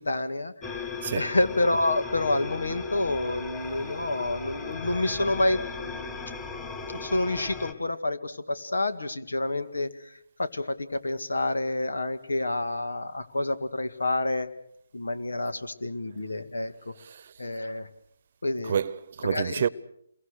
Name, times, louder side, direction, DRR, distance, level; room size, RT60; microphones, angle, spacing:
voice 1, 0.0-0.8 1.1-6.2 6.9-9.9 10.4-14.5 14.9-16.9 17.4-17.9 18.4-18.7 19.2-19.7, left 2 dB, 90° left, 2.0 m, -28 dB
sound 1, 0.6-7.7, left 4 dB, 15° left, 2.3 m, -37 dB
voice 2, 1.0-1.4 17.0-17.3 18.6-19.7, right 7 dB, 45° right, 0.9 m, -29 dB
28.0 x 22.5 x 6.6 m
hypercardioid pair, 155°, 0 cm